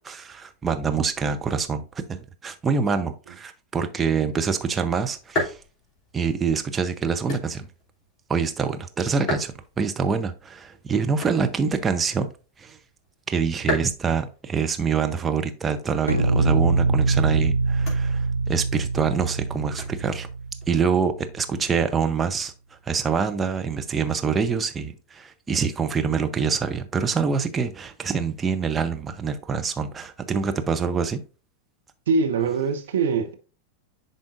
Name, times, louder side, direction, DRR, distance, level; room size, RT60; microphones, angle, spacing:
voice 1, 0.0-5.6 6.1-7.7 8.3-12.3 12.6-12.8 13.3-20.3 20.7-22.5 22.9-31.2, right 5 dB, 20° right, 0.7 m, -25 dB
sound 1, 4.1-21.1, left 1 dB, 25° left, 3.0 m, -38 dB
sound 2, 16.1-21.3, right 3 dB, 85° left, 0.5 m, -24 dB
voice 2, 32.1-33.3, right 5 dB, 60° right, 0.9 m, -23 dB
10.5 x 3.8 x 2.5 m
figure-of-eight pair, 90°, 0 cm